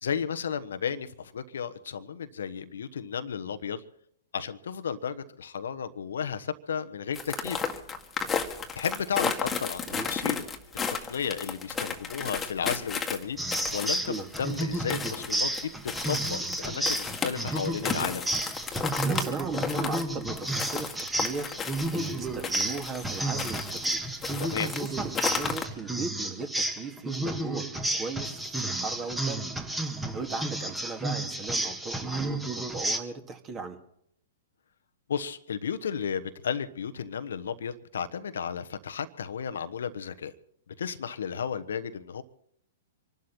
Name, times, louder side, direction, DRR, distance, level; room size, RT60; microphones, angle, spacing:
voice 1, 0.0-3.8 4.3-7.6 8.7-10.4 11.1-13.4 13.7-18.3 24.4-24.7 35.1-40.3 40.8-42.2, left 7 dB, 70° left, 9 dB, 1.1 m, -33 dB
sound 1, 7.1-23.9 24.2-25.6, left 5 dB, 15° left, 2.0 m, -33 dB
sound 2, 13.4-33.0, right 1 dB, 5° right, 1.8 m, -32 dB
voice 2, 19.0-24.0 24.6-27.7 27.9-29.4 29.8-33.8, right 4 dB, 25° right, 5 dB, 2.5 m, -37 dB
26.0 x 12.0 x 4.4 m, 0.71 s
figure-of-eight pair, 115°, 0 cm